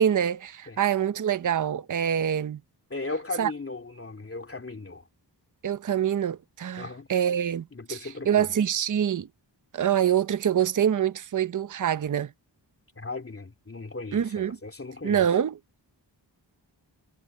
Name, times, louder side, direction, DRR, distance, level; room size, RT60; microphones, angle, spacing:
voice 1, 0.0-2.6 3.4-3.5 5.6-8.0 8.2-9.3 9.7-12.3 14.1-14.6 15.0-15.6, right 9 dB, 45° right, 0.7 m, -25 dB
voice 2, 2.9-5.0 6.8-7.1 7.7-8.5 13.0-15.2, left 3 dB, 30° left, 2.6 m, -37 dB
wide cardioid pair, 140°, 44 cm